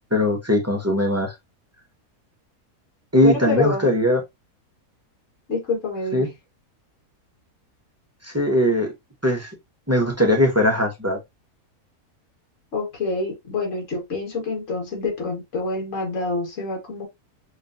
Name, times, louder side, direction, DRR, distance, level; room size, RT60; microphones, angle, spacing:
voice 1, 0.1-1.3 3.1-4.2 6.1-6.3 8.2-8.9 9.2-9.5 9.9-11.2, left 1 dB, 15° right, 0.6 m, -20 dB
voice 2, 3.2-3.9 5.5-6.3 12.7-17.0, left 3 dB, 55° left, 2.1 m, -27 dB
5.2 x 2.7 x 2.6 m
omnidirectional pair, 1.6 m